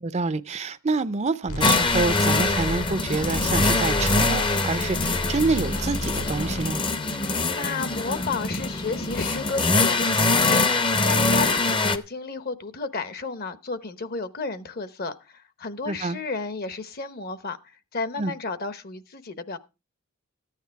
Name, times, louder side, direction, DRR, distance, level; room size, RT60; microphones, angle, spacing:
voice 1, 0.0-6.8 15.9-16.2 18.2-18.3, right 3 dB, 30° right, 0.5 m, -27 dB
sound 1, 1.5-6.7, left 1 dB, 80° left, 2.7 m, -32 dB
sound 2, 1.6-12.0, left 3 dB, 25° left, 0.7 m, -23 dB
voice 2, 7.1-19.6, left 4 dB, 45° left, 0.9 m, -32 dB
14.0 x 9.3 x 4.6 m
head